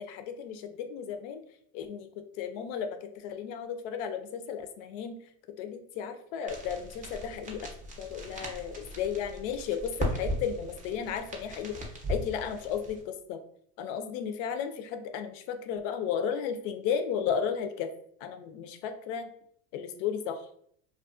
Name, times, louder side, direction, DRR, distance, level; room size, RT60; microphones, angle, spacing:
voice 1, 0.0-1.4 1.7-2.1 2.4-5.2 5.6-7.7 8.0-11.8 12.1-13.0 13.3-13.4 13.8-17.9 18.2-19.3 19.7-20.4, left 7 dB, 60° left, 8 dB, 0.5 m, -34 dB
sound 1, 6.5-13.0, equal, 20° right, 0.5 m, -38 dB
2.4 x 2.2 x 2.4 m, 0.66 s
supercardioid pair, 100°, 46 cm